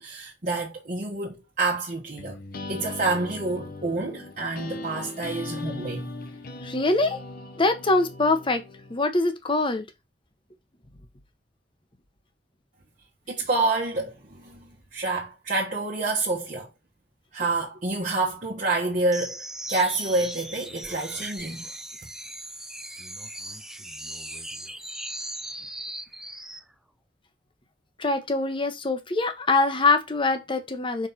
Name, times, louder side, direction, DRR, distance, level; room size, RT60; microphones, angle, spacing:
voice 1, 0.0-2.4 2.7-6.1 13.3-16.7 17.3-21.7, right 3 dB, 45° right, 1.3 m, -28 dB
sound 1, 2.2-9.0, left 2 dB, 55° left, 1.0 m, -38 dB
voice 2, 6.6-7.2 7.6-8.6 8.9-9.9 28.0-31.1, left 3 dB, 30° left, 1.1 m, -23 dB
sound 2, 19.1-26.7, right 1 dB, 5° right, 0.6 m, -38 dB
4.9 x 4.2 x 5.7 m
head